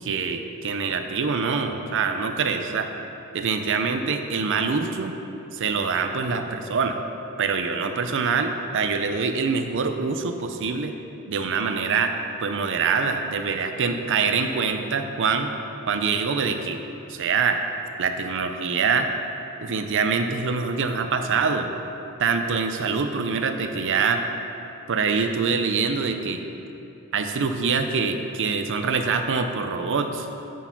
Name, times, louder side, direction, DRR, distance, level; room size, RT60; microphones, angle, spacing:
voice 1, 0.0-2.9 3.3-5.2 5.5-7.0 7.4-10.9 11.3-12.1 12.4-15.5 15.9-16.8 17.1-17.6 18.0-19.1 19.6-21.7 22.2-24.2 24.9-26.4 27.1-30.3, right 5 dB, 60° right, 6 dB, 0.6 m, -24 dB
9.1 x 4.6 x 6.0 m, 2.8 s
head